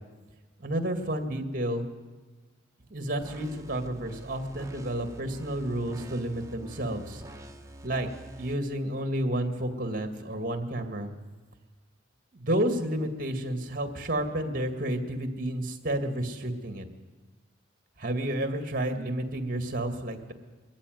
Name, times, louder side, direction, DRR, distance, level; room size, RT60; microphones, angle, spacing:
voice 1, 0.6-1.8 2.9-7.2 7.8-8.1 8.4-11.1 12.3-16.8 18.0-20.3, right 1 dB, 50° right, 7 dB, 2.1 m, -31 dB
sound 1, 3.2-8.5, right 1 dB, 15° right, 1.2 m, -46 dB
22.0 x 14.5 x 9.5 m, 1.3 s
head